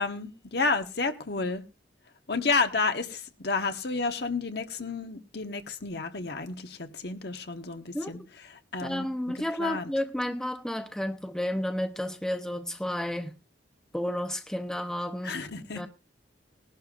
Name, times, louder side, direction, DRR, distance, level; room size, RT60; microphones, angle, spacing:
voice 1, 0.0-1.6 2.3-8.2 8.5-9.1 9.6-9.9 15.2-15.9, left 4 dB, 60° left, 1.2 m, -31 dB
voice 2, 8.8-13.3 13.9-15.4 15.7-15.9, left 1 dB, 5° left, 0.7 m, -31 dB
20.0 x 11.5 x 2.5 m
head